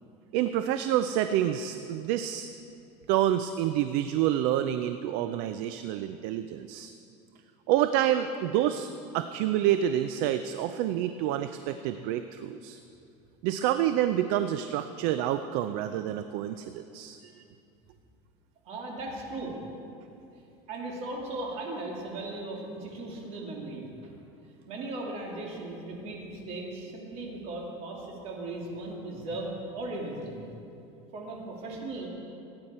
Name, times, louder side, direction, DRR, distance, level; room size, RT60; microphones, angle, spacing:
voice 1, 0.3-2.5 3.1-6.9 7.7-12.8 13.4-17.3, right 11 dB, 60° right, 10 dB, 0.5 m, -28 dB
voice 2, 18.6-19.6 20.7-24.1 24.7-30.5 31.1-32.1, right 2 dB, 45° right, -1 dB, 2.6 m, -37 dB
16.5 x 9.6 x 4.3 m, 2.7 s
supercardioid pair, 140°, 15 cm